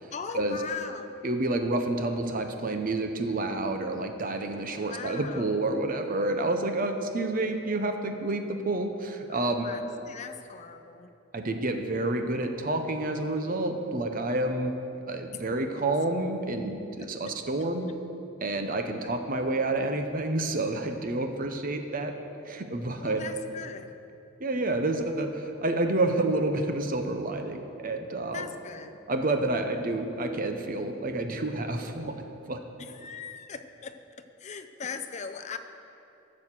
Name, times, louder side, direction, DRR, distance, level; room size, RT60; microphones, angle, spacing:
voice 1, 0.1-1.2 4.9-5.6 9.3-9.8 10.1-11.1 15.7-15.8 17.0-17.4 19.0-19.1 23.0-23.9 28.3-29.0 32.8-35.6, left 5 dB, 35° left, 8 dB, 0.5 m, -40 dB
voice 2, 1.2-9.7 11.3-14.7 15.1-17.9 18.4-22.1 22.5-23.3 24.4-28.5 29.1-32.1 32.5-32.6, right 2 dB, 45° right, 6 dB, 0.9 m, -29 dB
12.5 x 6.4 x 7.4 m, 2.8 s
head